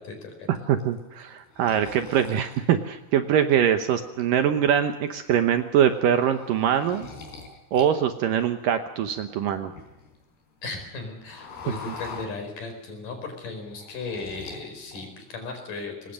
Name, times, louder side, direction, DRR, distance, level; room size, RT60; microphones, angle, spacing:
voice 1, 0.0-0.5 10.6-16.1, left 3 dB, 55° left, 5 dB, 6.0 m, -36 dB
voice 2, 0.7-7.1 7.7-9.7, right 9 dB, 70° right, 8 dB, 2.3 m, -23 dB
sound 1, 0.8-3.5 4.0-4.7 5.1-5.3 5.6-7.9 8.2-10.2 10.6-12.9 13.2-14.6 14.9-15.5, left 4 dB, 80° left, 6.2 m, -44 dB
23.5 x 20.5 x 6.5 m, 0.99 s
omnidirectional pair, 4.6 m